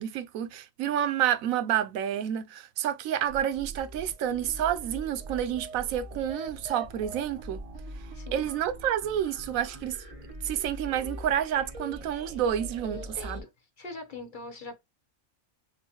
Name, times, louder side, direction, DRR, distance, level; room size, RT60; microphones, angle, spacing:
voice 1, 0.0-7.6 8.3-10.0 10.4-13.4, right 10 dB, 90° right, 1.0 m, -29 dB
sound 1, 3.3-13.4, right 1 dB, 30° right, 0.9 m, -42 dB
voice 2, 8.1-8.5 12.9-13.5 13.8-14.8, left 3 dB, 45° left, 0.8 m, -42 dB
6.2 x 2.1 x 2.8 m
omnidirectional pair, 1.4 m